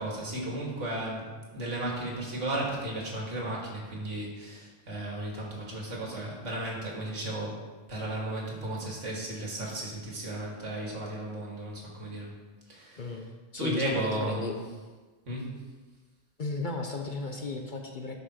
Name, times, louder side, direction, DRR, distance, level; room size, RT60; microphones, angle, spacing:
voice 1, 0.0-7.6 7.9-12.3 12.7-13.2 13.6-14.6 15.3-15.5, right 1 dB, 80° right, -2 dB, 2.4 m, -34 dB
voice 2, 13.5-14.5 16.4-18.1, left 3 dB, 45° left, 3 dB, 0.9 m, -34 dB
11.5 x 5.6 x 4.4 m, 1.3 s
omnidirectional pair, 1.3 m